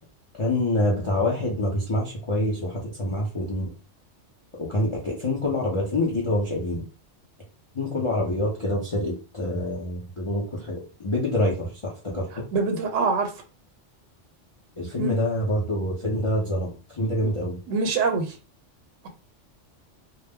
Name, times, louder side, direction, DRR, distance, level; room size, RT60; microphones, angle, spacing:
voice 1, 0.3-3.7 4.6-6.8 7.7-12.3 14.8-16.7 17.0-17.6, left 1 dB, 40° left, 0.4 m, -26 dB
voice 2, 12.5-13.3 15.0-15.2 17.2-17.3 17.7-18.4, right 4 dB, 85° right, 0.9 m, -24 dB
2.2 x 2.0 x 3.4 m
omnidirectional pair, 1.3 m